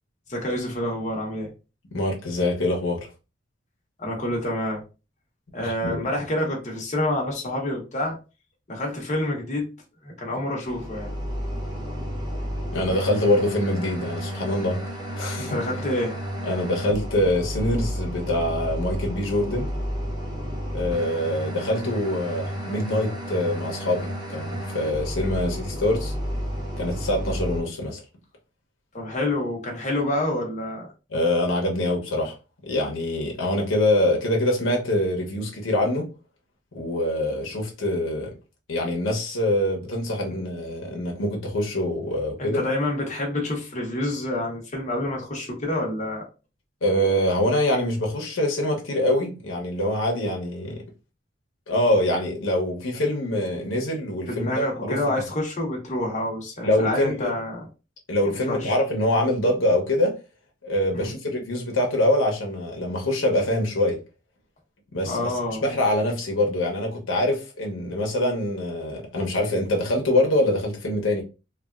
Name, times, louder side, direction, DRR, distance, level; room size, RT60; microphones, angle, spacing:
voice 1, 0.3-1.5 4.0-4.8 5.5-8.2 8.7-9.7 10.0-11.1 15.4-16.2 28.9-30.9 42.4-46.2 54.3-57.7 58.2-58.8 60.9-61.1 65.0-65.6, left 1 dB, 40° left, 0.9 m, -28 dB
voice 2, 1.9-3.1 5.6-6.0 12.7-14.8 15.2-15.6 16.4-19.7 20.7-26.1 26.8-28.0 31.1-32.3 32.6-36.1 36.7-38.3 38.7-42.6 46.8-50.8 51.7-55.0 56.6-57.3 58.1-60.2 60.6-64.0 64.9-65.3 65.6-71.2, left 1 dB, 85° left, 0.8 m, -24 dB
sound 1, 10.6-27.6, equal, 20° right, 0.6 m, -32 dB
3.3 x 2.3 x 2.3 m
head